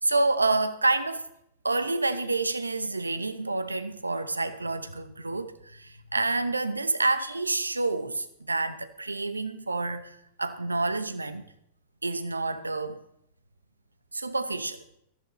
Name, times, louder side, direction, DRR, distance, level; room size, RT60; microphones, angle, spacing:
voice 1, 0.0-1.3 1.6-11.4 12.0-13.0 14.1-14.8, right 3 dB, 85° right, 0.9 m, -28 dB
18.0 x 14.0 x 3.1 m
figure-of-eight pair, 95°, 0 cm